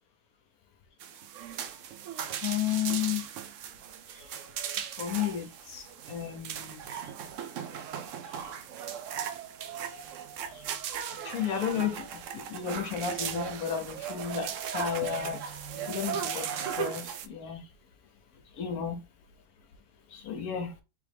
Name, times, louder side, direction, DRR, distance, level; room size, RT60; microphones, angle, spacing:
sound 1, 1.0-17.3, right 8 dB, 75° right, 0.7 m, -37 dB
voice 1, 2.4-3.2 5.0-7.0 10.5-10.6 11.2-15.4 15.8-17.6 18.6-19.0 20.1-20.7, left 9 dB, 65° left, 1.1 m, -33 dB
3.7 x 3.0 x 3.3 m
omnidirectional pair, 1.8 m